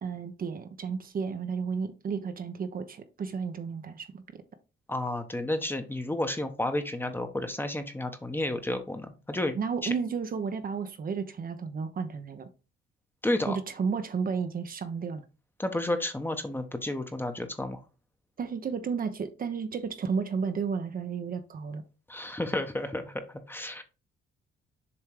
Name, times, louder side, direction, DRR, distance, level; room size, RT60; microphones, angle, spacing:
voice 1, 0.0-4.2 9.6-12.5 13.5-15.2 18.4-21.8, right 5 dB, 45° right, 1.0 m, -32 dB
voice 2, 4.9-9.6 9.8-9.9 13.2-13.6 15.6-17.8 22.1-23.8, left 1 dB, 10° left, 1.0 m, -31 dB
7.0 x 3.3 x 4.9 m
cardioid pair, 90°, 20 cm